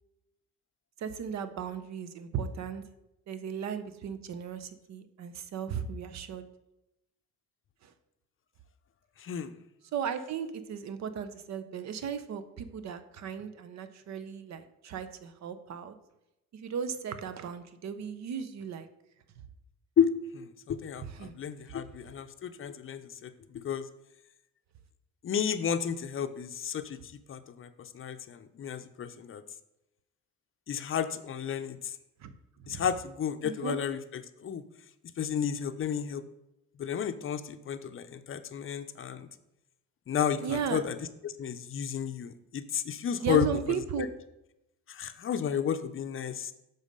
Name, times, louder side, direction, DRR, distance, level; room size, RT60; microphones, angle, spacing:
voice 1, 1.0-2.8 3.3-6.4 7.8-7.9 9.9-15.9 16.5-18.9 21.2-21.3 32.2-32.3 32.6-32.9 33.4-33.8 40.4-40.8 43.2-44.1, right 7 dB, 65° right, 11 dB, 0.7 m, -36 dB
voice 2, 9.2-9.5 20.0-23.9 25.2-29.4 30.7-31.9 32.7-34.6 35.2-36.2 36.8-39.3 40.1-41.0 41.2-43.5 44.0-44.1 44.9-46.5, left 8 dB, 45° left, 11 dB, 0.5 m, -32 dB
7.2 x 3.9 x 5.3 m, 0.89 s
cardioid pair, 90°, 30 cm